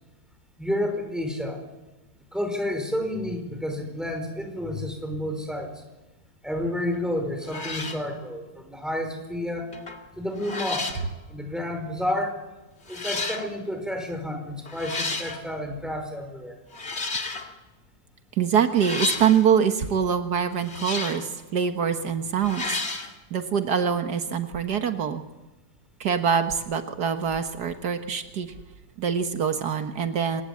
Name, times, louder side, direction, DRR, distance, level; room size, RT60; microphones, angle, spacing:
voice 1, 0.6-1.6 2.3-5.7 6.4-9.7 10.2-10.9 11.3-12.4 12.9-16.6, left 1 dB, ahead, 4 dB, 5.1 m, -30 dB
sound 1, 6.9-7.1 7.4-8.1 9.7-10.0 10.4-11.1 12.1-12.2 12.9-13.5 14.7-15.4 16.7-17.5 18.8-19.5 20.6-21.3 22.4-23.1, left 3 dB, 40° left, 2.4 m, -32 dB
voice 2, 18.4-22.7 23.3-25.2 26.0-28.5 29.0-30.4, right 7 dB, 80° right, 7 dB, 1.9 m, -24 dB
26.5 x 20.5 x 8.5 m, 1.1 s
omnidirectional pair, 1.7 m